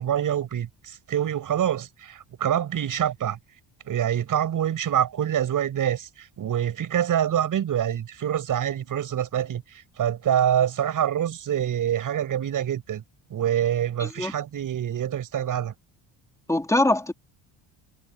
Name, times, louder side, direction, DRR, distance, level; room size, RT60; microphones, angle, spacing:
voice 1, 0.0-3.4 3.9-13.0 13.3-15.7, right 10 dB, 45° right, 7.3 m, -26 dB
voice 2, 14.0-14.3 16.5-17.1, left 1 dB, 5° left, 3.3 m, -23 dB
cardioid pair, 140°, 44 cm